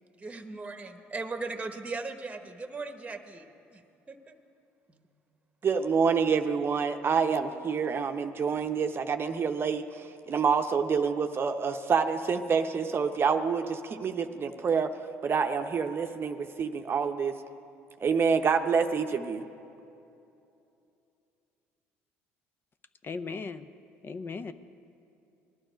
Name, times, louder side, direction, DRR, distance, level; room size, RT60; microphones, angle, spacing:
voice 1, 0.2-3.8 4.1-4.3 4.9-5.1, right 3 dB, 20° right, 7 dB, 1.1 m, -38 dB
voice 2, 5.6-14.9 15.2-17.4 18.0-19.4, right 6 dB, 40° right, 7 dB, 0.7 m, -27 dB
voice 3, 23.0-23.7 24.0-24.5, left 4 dB, 35° left, 12 dB, 0.6 m, -37 dB
18.0 x 12.0 x 5.1 m, 2.7 s
hypercardioid pair, 65°, 6 cm